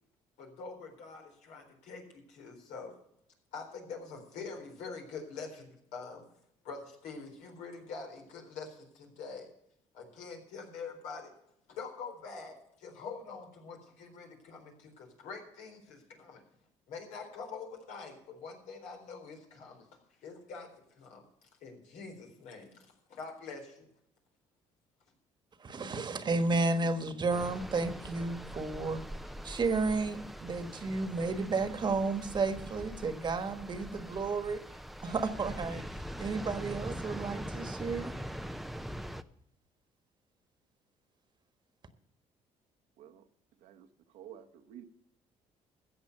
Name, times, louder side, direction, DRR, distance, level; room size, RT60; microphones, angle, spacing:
voice 1, 0.4-2.9 3.5-6.2 6.6-9.5 9.9-11.3 11.7-16.4 16.9-19.9 20.2-20.7 21.0-21.2 21.6-22.7 23.1-23.9, left 4 dB, 80° left, 2 dB, 4.0 m, -45 dB
voice 2, 25.6-29.0 29.4-34.6 35.0-35.8 36.2-38.1, right 3 dB, 35° right, 10 dB, 1.4 m, -32 dB
sound 1, 27.3-39.2, equal, ahead, 0.6 m, -42 dB
voice 3, 44.1-44.9, right 10 dB, 85° right, 6 dB, 1.2 m, -51 dB
14.5 x 7.9 x 6.7 m, 0.75 s
cardioid pair, 95°, 12 cm